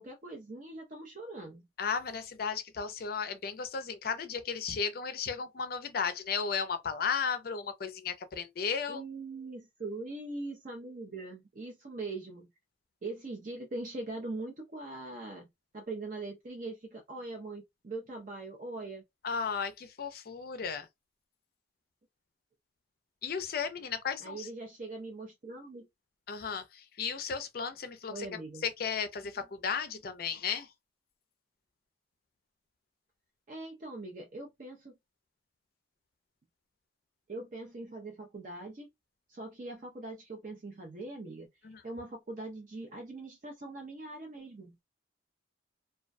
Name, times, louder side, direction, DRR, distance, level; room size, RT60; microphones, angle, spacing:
voice 1, 0.0-1.7 8.9-12.5 13.0-19.0 24.2-25.9 28.1-28.7 33.5-34.9 37.3-38.9 39.3-41.5 41.8-44.8, right 2 dB, 40° right, 0.5 m, -42 dB
voice 2, 1.8-9.0 19.2-20.9 23.2-24.5 26.3-30.7 41.6-41.8, left 6 dB, 50° left, 0.4 m, -35 dB
2.3 x 2.1 x 2.5 m
head